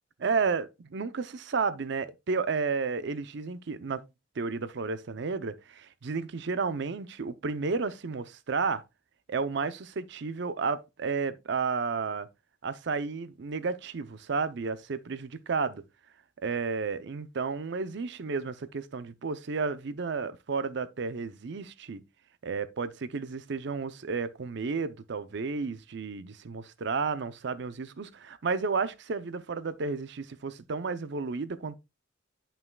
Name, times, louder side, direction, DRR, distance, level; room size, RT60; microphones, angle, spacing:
voice 1, 0.2-4.0 4.4-8.8 9.3-12.3 12.6-15.8 16.4-22.0 22.4-31.8, right 4 dB, 65° right, 0.5 m, -32 dB
9.5 x 5.6 x 2.2 m
head